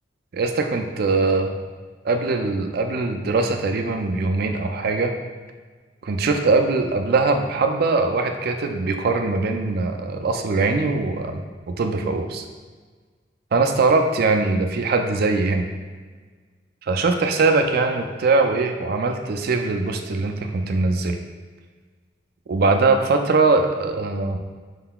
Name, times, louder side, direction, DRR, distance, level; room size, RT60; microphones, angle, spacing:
voice 1, 0.3-1.5 2.0-5.1 6.0-11.4 11.8-12.4 13.5-15.7 16.9-21.2 22.5-24.4, right 3 dB, 55° right, 5 dB, 0.4 m, -21 dB
5.5 x 3.8 x 2.3 m, 1.5 s
head